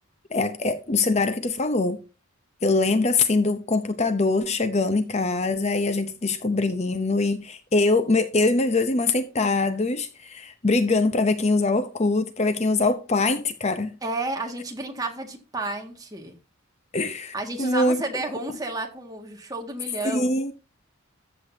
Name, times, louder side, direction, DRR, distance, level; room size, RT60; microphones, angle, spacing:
voice 1, 0.3-2.0 2.6-14.0 16.9-18.0 20.0-20.5, left 3 dB, 30° left, 0.7 m, -23 dB
voice 2, 14.0-16.4 17.3-20.3, right 2 dB, 20° right, 1.9 m, -31 dB
14.0 x 8.0 x 2.8 m
head